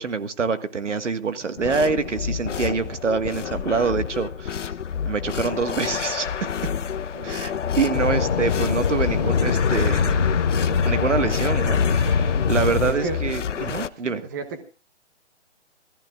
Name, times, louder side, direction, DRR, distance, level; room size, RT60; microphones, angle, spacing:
voice 1, 0.0-4.7 5.0-6.7 7.2-10.3 10.9-14.3, right 5 dB, 85° right, 1.7 m, -26 dB
sound 1, 1.6-13.9, left 7 dB, 85° left, 0.7 m, -29 dB
voice 2, 7.1-7.5 12.4-12.5 12.8-14.6, right 4 dB, 15° right, 1.2 m, -35 dB
sound 2, 7.9-12.9, left 6 dB, 35° left, 0.8 m, -22 dB
26.5 x 14.5 x 2.4 m
hypercardioid pair, 165°, 35 cm